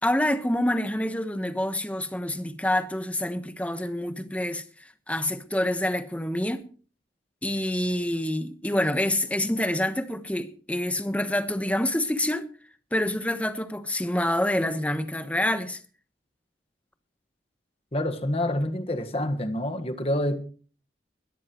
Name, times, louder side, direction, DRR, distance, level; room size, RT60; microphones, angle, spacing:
voice 1, 0.0-4.6 5.1-6.7 7.4-12.5 12.9-15.8, left 1 dB, 10° left, 1.1 m, -27 dB
voice 2, 17.9-20.4, left 1 dB, 35° left, 1.5 m, -27 dB
21.0 x 13.0 x 3.1 m
head